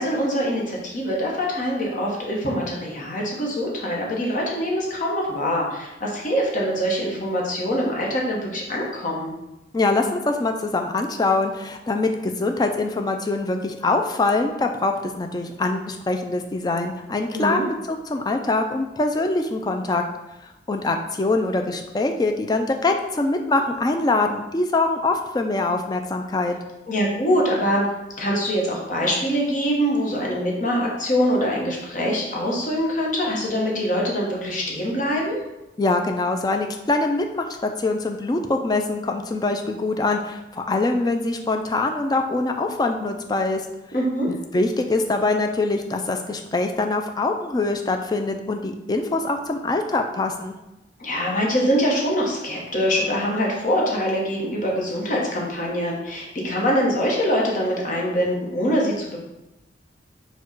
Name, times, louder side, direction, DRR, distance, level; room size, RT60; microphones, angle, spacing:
voice 1, 0.0-9.3 17.3-17.6 26.9-27.8 28.2-35.4 43.9-44.3 51.0-59.2, equal, 45° left, -2 dB, 0.9 m, -24 dB
voice 2, 9.7-20.0 20.7-26.6 35.8-43.6 44.3-50.6, left 2 dB, 20° left, 5 dB, 0.3 m, -23 dB
4.5 x 2.3 x 4.4 m, 0.96 s
head